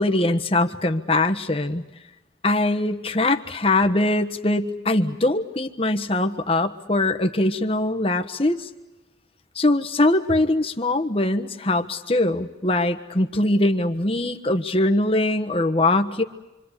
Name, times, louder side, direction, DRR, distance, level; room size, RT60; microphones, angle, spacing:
voice 1, 0.0-1.8 2.4-8.7 9.5-16.2, left 2 dB, 30° left, 6 dB, 1.4 m, -22 dB
27.5 x 25.0 x 8.4 m, 1.0 s
head